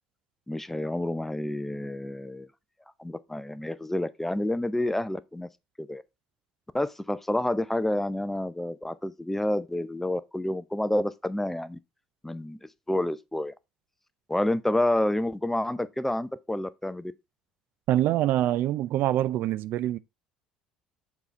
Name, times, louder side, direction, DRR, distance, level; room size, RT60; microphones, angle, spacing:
voice 1, 0.5-2.5 3.0-5.5 5.8-6.0 6.7-11.8 12.2-12.6 12.9-13.5 14.3-17.1, left 1 dB, 5° left, 0.6 m, -29 dB
voice 2, 17.9-20.0, right 13 dB, 55° right, 0.4 m, -25 dB
7.1 x 4.1 x 4.4 m
hypercardioid pair, 65°, 4 cm